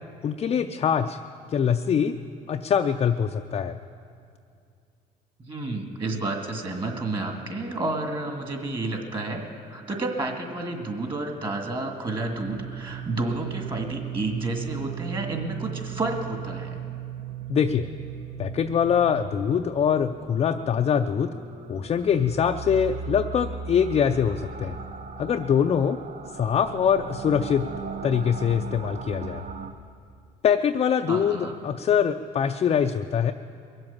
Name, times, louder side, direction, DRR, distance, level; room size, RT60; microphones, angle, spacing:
voice 1, 0.2-1.2 1.5-2.1 2.5-3.8 17.5-17.9 18.4-21.3 21.7-24.8 25.2-26.0 26.4-27.7 28.0-29.4 30.4-33.3, left 7 dB, 35° left, 5 dB, 0.5 m, -23 dB
voice 2, 5.4-9.4 9.7-16.8 31.1-31.6, right 2 dB, 30° right, 2 dB, 2.1 m, -30 dB
sound 1, 12.3-29.7, right 7 dB, 45° right, 0.9 m, -37 dB
22.0 x 7.8 x 7.2 m, 2.3 s
cardioid pair, 110°, 17 cm